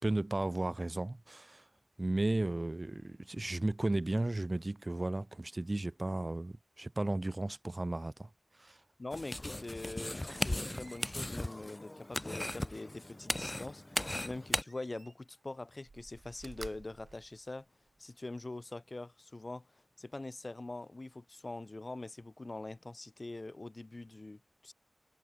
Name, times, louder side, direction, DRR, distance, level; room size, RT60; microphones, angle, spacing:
voice 1, 0.0-1.6 2.0-8.3 8.6-8.8, right 2 dB, 35° right, 1.2 m, -34 dB
voice 2, 9.0-17.7 18.0-24.7, left 2 dB, 40° left, 3.1 m, -44 dB
sound 1, 9.1-14.6, left 1 dB, 25° left, 0.6 m, -37 dB
Slam, 9.5-13.4 14.5-15.4 15.8-18.1 18.6-18.7, right 3 dB, 75° right, 6.5 m, -55 dB
wide cardioid pair, 70°, 0 cm